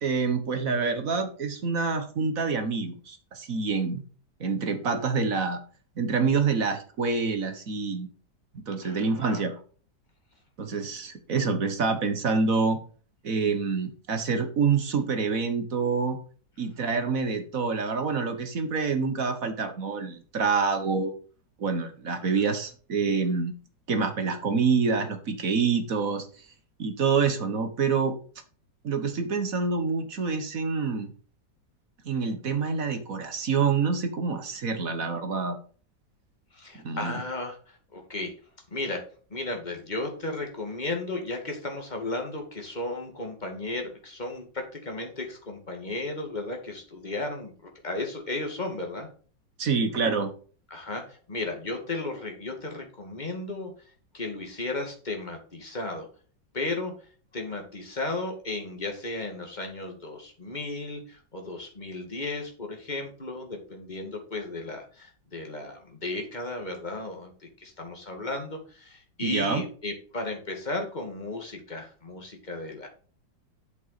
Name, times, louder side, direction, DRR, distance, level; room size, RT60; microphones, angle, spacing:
voice 1, 0.0-4.0 4.4-5.6 6.0-8.1 8.5-9.5 10.6-12.8 13.2-16.2 16.6-21.1 21.6-23.5 23.9-26.3 26.8-28.2 28.8-31.1 32.0-35.5 36.8-37.2 49.6-50.3 69.2-69.6, right 5 dB, 50° right, 8 dB, 1.6 m, -27 dB
voice 2, 8.8-9.4 16.9-17.0 36.5-38.3 38.7-39.0 39.3-49.1 50.7-53.7 54.1-56.1 56.5-56.9 57.3-72.9, left 2 dB, 25° left, 3 dB, 2.4 m, -34 dB
8.1 x 7.3 x 4.2 m, 0.40 s
omnidirectional pair, 2.0 m